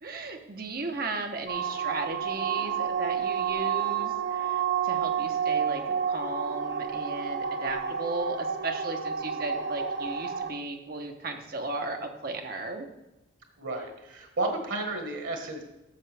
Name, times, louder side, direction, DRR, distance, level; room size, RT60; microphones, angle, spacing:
voice 1, 0.0-12.9, right 3 dB, 50° right, 4 dB, 1.0 m, -35 dB
sound 1, 1.5-10.5, right 7 dB, 75° right, 1.0 m, -30 dB
voice 2, 13.6-15.6, right 2 dB, 90° right, 3 dB, 1.5 m, -32 dB
12.5 x 6.5 x 3.4 m, 0.95 s
head